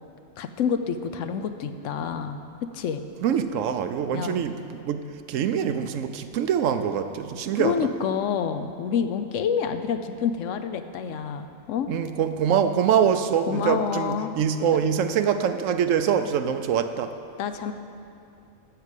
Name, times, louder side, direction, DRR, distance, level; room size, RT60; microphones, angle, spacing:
voice 1, 0.4-3.0 4.1-4.4 7.5-11.9 13.5-14.3 17.4-17.7, left 7 dB, 75° left, 9 dB, 1.0 m, -28 dB
voice 2, 3.2-5.0 5.3-7.7 11.9-17.1, right 8 dB, 75° right, 9 dB, 0.9 m, -24 dB
12.5 x 4.9 x 8.2 m, 2.6 s
omnidirectional pair, 1.4 m